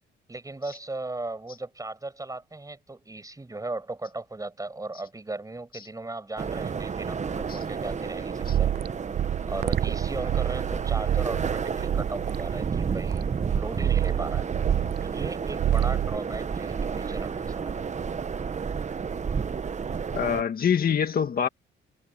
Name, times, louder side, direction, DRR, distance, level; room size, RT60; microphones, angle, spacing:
voice 1, 0.3-8.7 9.5-14.5 15.0-17.8, right 2 dB, 15° right, 7.9 m, -37 dB
sound 1, 6.4-20.4, right 6 dB, 35° right, 1.2 m, -31 dB
sound 2, 8.4-15.3 15.6-16.2, right 11 dB, 55° right, 0.5 m, -27 dB
voice 2, 20.1-21.5, left 7 dB, 50° left, 1.7 m, -25 dB
cardioid pair, 90°, 20 cm